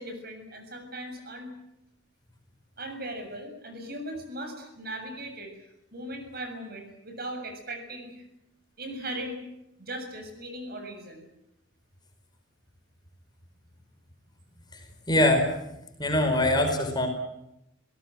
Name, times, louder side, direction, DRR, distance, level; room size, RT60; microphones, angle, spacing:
voice 1, 0.0-1.5 2.8-5.5 5.9-8.2 8.8-9.4 9.8-11.2, right 1 dB, 55° right, 5 dB, 7.0 m, -38 dB
voice 2, 15.1-15.5 16.0-17.1, left 1 dB, 20° left, 4 dB, 4.8 m, -22 dB
30.0 x 18.0 x 7.7 m, 0.85 s
head